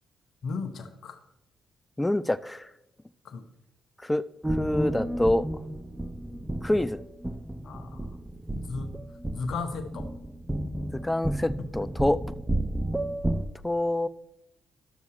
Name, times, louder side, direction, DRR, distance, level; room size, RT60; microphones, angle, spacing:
voice 1, 0.4-1.2 3.2-3.4 7.6-8.2 8.5-9.0 9.3-10.1 11.6-11.9, left 4 dB, 65° left, 8 dB, 0.9 m, -36 dB
voice 2, 2.0-2.7 4.0-4.2 4.5-5.5 6.6-7.0 10.9-12.2 13.6-14.1, left 1 dB, 15° left, 16 dB, 0.4 m, -26 dB
sound 1, 4.4-13.5, right 1 dB, 10° right, 0.8 m, -32 dB
12.0 x 6.9 x 3.2 m, 0.88 s
hypercardioid pair, 45°, 0 cm